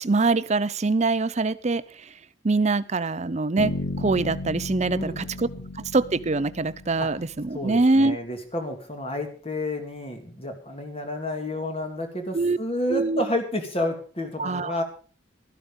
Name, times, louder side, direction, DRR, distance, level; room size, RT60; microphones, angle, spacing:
voice 1, 0.0-1.8 2.4-5.5 5.9-8.2 12.3-12.6 12.9-13.2 14.4-14.8, right 3 dB, 35° right, 15 dB, 0.6 m, -24 dB
Bass guitar, 3.6-7.5, left 2 dB, 80° left, 2.9 m, -34 dB
voice 2, 4.9-5.6 7.0-7.1 7.5-14.8, left 1 dB, 30° left, 6 dB, 2.2 m, -30 dB
12.5 x 12.0 x 5.3 m, 0.41 s
head